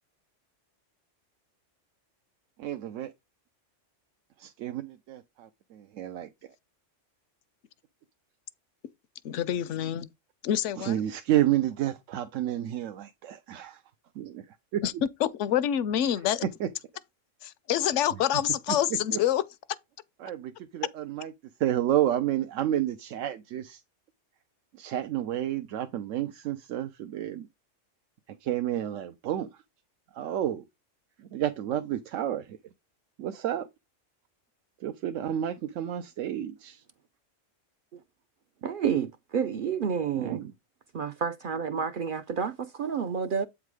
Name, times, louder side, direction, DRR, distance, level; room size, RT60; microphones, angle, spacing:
voice 1, 2.6-3.1 4.4-6.3 10.8-13.8 14.2-14.8 16.6-16.7 18.7-18.8 19.1-19.2 20.2-21.3 21.6-23.8 24.8-27.5 28.3-29.6 30.1-30.6 31.2-32.6 33.2-33.7 34.8-36.8 40.2-40.5, right 12 dB, 80° right, 1.0 m, -30 dB
voice 2, 9.2-10.1 10.4-11.0 14.8-14.9 15.2-16.4 17.4-19.4, left 10 dB, 75° left, 0.9 m, -27 dB
voice 3, 38.6-40.4 40.9-43.5, right 7 dB, 60° right, 0.5 m, -30 dB
8.2 x 3.6 x 4.7 m
omnidirectional pair, 1.3 m